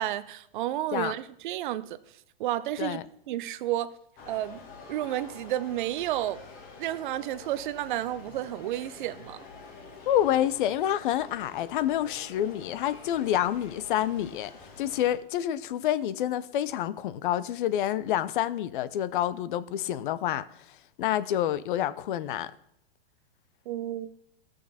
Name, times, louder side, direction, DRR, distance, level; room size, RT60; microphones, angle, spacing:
voice 1, 0.0-2.0 2.4-3.0 3.3-3.9 4.3-4.6 4.9-6.4 6.8-9.4 23.7-24.1, right 13 dB, 55° right, 0.6 m, -31 dB
sound 1, 4.2-15.2, left 4 dB, 30° left, 1.5 m, -48 dB
voice 2, 10.1-14.5 14.8-20.5 21.0-22.5, left 11 dB, 55° left, 0.6 m, -28 dB
14.0 x 6.5 x 4.1 m
hypercardioid pair, 145°, 30 cm